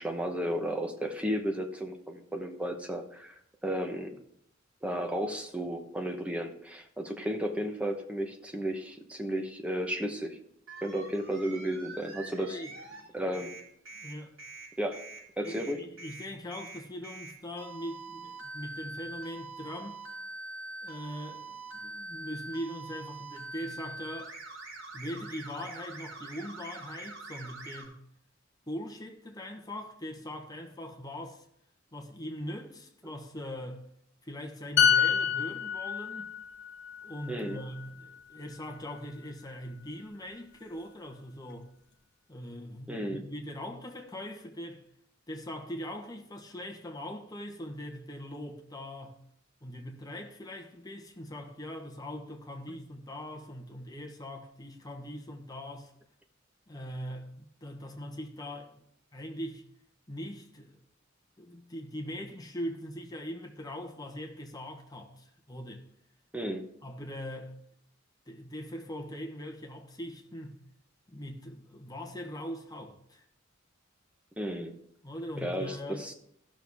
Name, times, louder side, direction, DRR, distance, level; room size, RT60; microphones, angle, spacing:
voice 1, 0.0-3.3 3.6-4.2 4.8-10.4 10.8-12.6 13.1-13.5 14.8-15.0 15.4-15.8 37.3-37.6 42.9-43.2 52.7-52.8 66.3-66.7 74.4-74.7 75.4-76.1, equal, 5° right, 0.9 m, -33 dB
sound 1, 10.7-13.0 13.3-27.9, right 2 dB, 85° right, 4.1 m, -44 dB
voice 2, 12.4-13.4 13.9-14.3 15.4-20.0 20.8-24.3 24.9-28.0 28.7-31.4 31.9-33.8 34.2-36.4 37.0-41.7 42.3-44.8 45.3-49.2 49.6-55.9 56.7-58.8 59.1-59.7 60.1-60.8 61.4-65.9 66.8-67.6 68.3-70.6 71.1-73.2 75.0-76.1, equal, 20° left, 1.1 m, -41 dB
sound 2, 34.8-38.4 38.7-38.9, left 8 dB, 60° left, 1.0 m, -28 dB
14.5 x 6.3 x 3.5 m
head